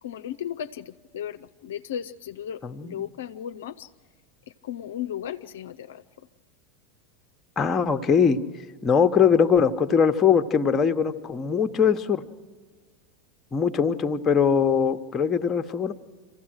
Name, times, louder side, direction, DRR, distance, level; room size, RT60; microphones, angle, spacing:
voice 1, 0.0-0.8 1.1-1.4 1.6-3.9 4.7-6.0, left 10 dB, 75° left, 9 dB, 0.5 m, -35 dB
voice 2, 2.6-3.0 7.6-8.4 8.8-12.2 13.5-15.9, left 6 dB, 25° left, 7 dB, 1.0 m, -21 dB
26.5 x 15.5 x 6.3 m, 1.5 s
hypercardioid pair, 90°, 0 cm